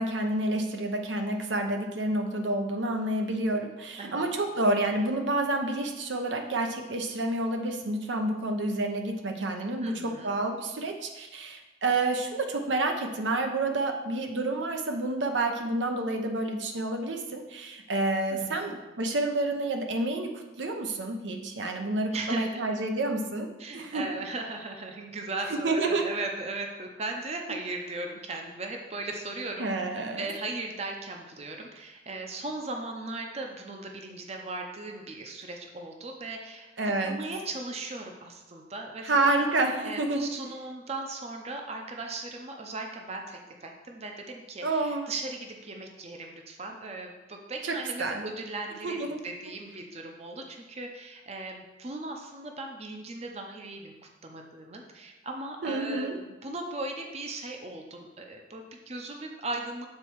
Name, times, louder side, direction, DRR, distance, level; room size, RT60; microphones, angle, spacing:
voice 1, 0.0-20.3 20.6-23.5 23.7-24.2 25.6-26.1 29.6-30.3 36.8-37.2 39.0-40.3 44.6-45.1 47.6-48.3 48.8-49.2 55.6-56.2, right 2 dB, 85° right, 4 dB, 0.8 m, -29 dB
voice 2, 4.0-4.3 9.8-10.3 18.3-18.8 22.1-22.6 23.6-29.7 30.1-39.4 39.8-53.9 54.2-59.9, right 2 dB, 35° right, 2 dB, 0.6 m, -38 dB
7.5 x 4.1 x 4.6 m, 1.1 s
head